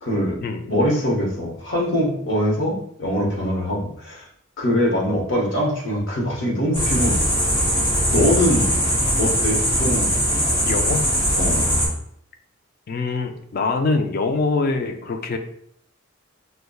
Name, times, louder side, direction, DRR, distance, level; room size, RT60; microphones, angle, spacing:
voice 1, 0.0-0.4 0.7-4.3 4.6-7.3 8.1-8.7 9.2-10.1 11.3-11.7, equal, 65° left, -2 dB, 0.9 m, -22 dB
sound 1, 6.7-11.9, equal, 25° left, 1.5 m, -20 dB
voice 2, 10.7-11.1 12.9-15.4, left 3 dB, 45° left, 6 dB, 0.3 m, -24 dB
5.0 x 2.2 x 2.3 m, 0.67 s
head